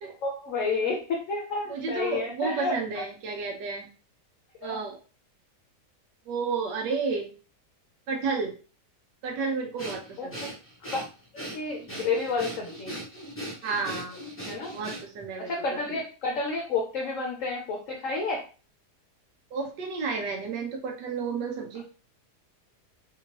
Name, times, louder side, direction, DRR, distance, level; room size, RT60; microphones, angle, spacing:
voice 1, 0.0-3.0 4.6-4.8 10.2-10.3 10.8-11.0 11.3-12.9 14.5-14.7 15.5-18.4, left 3 dB, 60° left, 0 dB, 0.9 m, -30 dB
voice 2, 1.7-3.9 4.6-5.0 6.3-7.3 8.1-8.5 9.2-10.5 13.6-14.2 14.7-15.5 15.9-16.0 19.5-21.8, right 4 dB, 85° right, 0 dB, 1.4 m, -31 dB
Breathing, 9.8-15.3, right 1 dB, 10° left, 0.6 m, -39 dB
3.5 x 3.0 x 2.9 m, 0.37 s
omnidirectional pair, 1.8 m